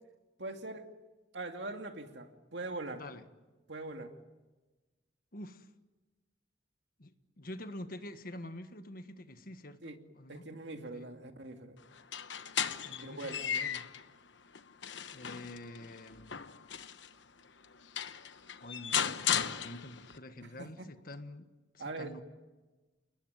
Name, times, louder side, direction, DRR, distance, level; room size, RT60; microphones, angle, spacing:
voice 1, 0.4-0.9 1.3-3.0 3.7-4.1 9.8-10.0 10.3-11.8 13.0-13.5 20.4-20.9 21.8-22.1, right 2 dB, 70° right, 5 dB, 2.5 m, -42 dB
voice 2, 5.3-5.7 7.0-10.4 10.9-11.1 12.8-13.9 15.1-16.4 18.6-21.5 21.7-22.2, left 1 dB, 50° left, 9 dB, 1.6 m, -47 dB
sound 1, 12.0-14.0 14.5-17.1 17.6-17.7 18.0-20.2, left 8 dB, 80° left, 1.1 m, -36 dB
29.5 x 20.5 x 9.1 m, 1.2 s
head